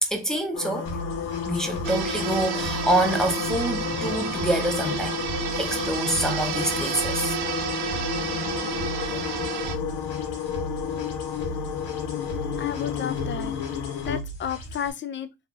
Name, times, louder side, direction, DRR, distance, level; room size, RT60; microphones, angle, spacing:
voice 1, 0.0-1.0 1.5-5.2 5.6-7.3 9.1-9.2, right 1 dB, ahead, 0.7 m, -26 dB
sound 1, 0.5-14.2, left 8 dB, 70° left, 0.7 m, -32 dB
sound 2, 0.9-14.9, right 2 dB, 85° left, 1.2 m, -37 dB
sound 3, 1.8-9.8, right 7 dB, 70° right, 0.7 m, -31 dB
voice 2, 12.6-13.5 14.0-15.3, left 8 dB, 30° left, 0.4 m, -32 dB
2.9 x 2.4 x 3.8 m
cardioid pair, 110°, 41 cm